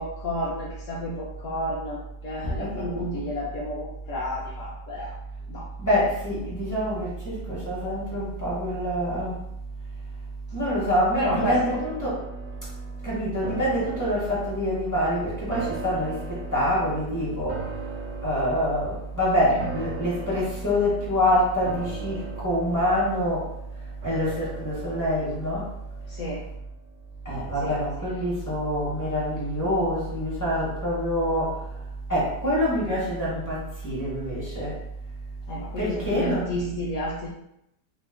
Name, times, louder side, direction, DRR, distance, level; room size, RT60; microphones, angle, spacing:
voice 1, 0.0-5.1 5.5-5.7 11.2-11.6 19.5-19.6 26.1-26.4 27.6-27.8 35.5-37.3, equal, 70° left, -5 dB, 0.8 m, -31 dB
voice 2, 2.4-3.1 5.8-9.4 10.5-12.2 13.0-18.0 18.2-23.5 24.0-25.7 27.2-31.8 32.1-34.8 35.8-36.8, equal, 15° left, -8 dB, 0.6 m, -26 dB
sound 1, 11.3-26.6 27.0-27.1, right 4 dB, 70° right, 0.8 m, -40 dB
3.0 x 2.0 x 3.4 m, 0.80 s
omnidirectional pair, 1.8 m